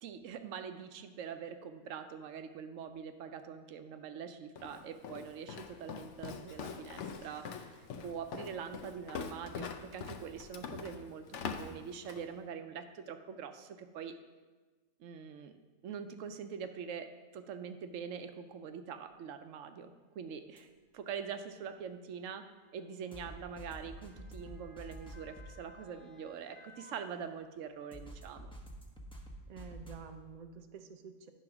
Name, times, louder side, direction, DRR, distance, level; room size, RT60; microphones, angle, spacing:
voice 1, 0.0-14.2 15.0-15.5 15.8-28.5, right 7 dB, 65° right, 8 dB, 0.9 m, -44 dB
Walk footsteps, 4.6-12.3, left 6 dB, 65° left, 0.8 m, -44 dB
Motor vehicle (road) / Siren, 17.9-18.0 19.0-19.2 20.3-27.9 28.3-28.4, left 3 dB, 25° left, 1.1 m, -61 dB
sound 1, 20.6-20.7 23.1-25.5 27.9-30.0, right 1 dB, 5° left, 0.7 m, -48 dB
voice 2, 29.5-31.3, right 6 dB, 85° right, 7 dB, 0.3 m, -49 dB
10.0 x 4.1 x 5.9 m, 1.3 s
omnidirectional pair, 1.5 m